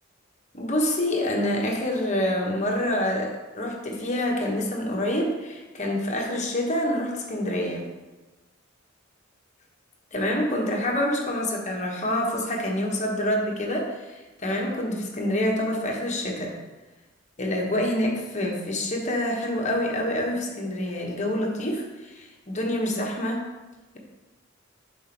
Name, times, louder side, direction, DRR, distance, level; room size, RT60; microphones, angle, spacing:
voice 1, 0.5-7.9 10.1-16.5 17.4-23.4, left 1 dB, 35° left, 0 dB, 1.2 m, -27 dB
5.5 x 4.3 x 5.9 m, 1.1 s
head